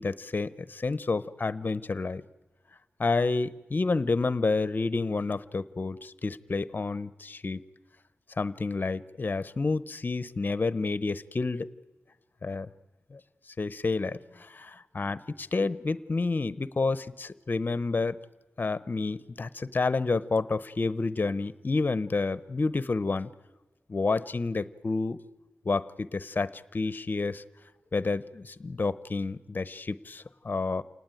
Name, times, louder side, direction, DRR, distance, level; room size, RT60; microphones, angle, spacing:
voice 1, 0.0-2.2 3.0-7.6 8.4-11.7 12.4-12.7 13.1-13.2 13.6-18.2 18.6-23.3 23.9-25.2 25.6-27.4 27.9-30.8, left 3 dB, 45° left, 16 dB, 0.8 m, -29 dB
28.5 x 19.0 x 9.2 m, 1.2 s
wide cardioid pair, 105°, 4 cm